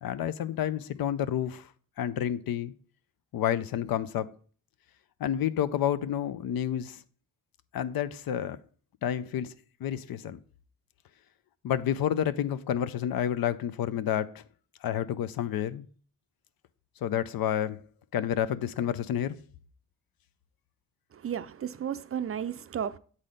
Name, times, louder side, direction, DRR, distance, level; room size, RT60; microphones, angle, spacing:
voice 1, 0.0-1.7 2.0-2.7 3.3-4.3 5.2-7.0 7.7-8.6 9.0-9.5 9.8-10.4 11.6-14.4 14.8-15.8 17.0-17.8 18.1-19.4, left 10 dB, 80° left, 0.6 m, -29 dB
voice 2, 21.1-23.0, right 8 dB, 40° right, 0.4 m, -33 dB
7.5 x 4.1 x 5.0 m
cardioid pair, 80°, 35 cm